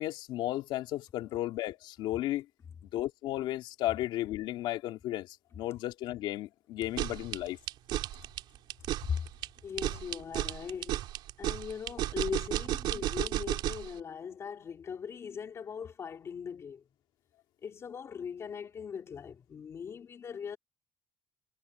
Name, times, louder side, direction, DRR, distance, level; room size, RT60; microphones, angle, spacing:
voice 1, 0.0-2.4 2.8-7.6, left 15 dB, 90° left, 3.1 m, -34 dB
sound 1, 6.8-13.9, right 13 dB, 75° right, 3.8 m, -33 dB
voice 2, 9.6-11.1 11.4-16.8 17.6-20.6, left 7 dB, 35° left, 3.1 m, -40 dB
cardioid pair, 165°, 8 cm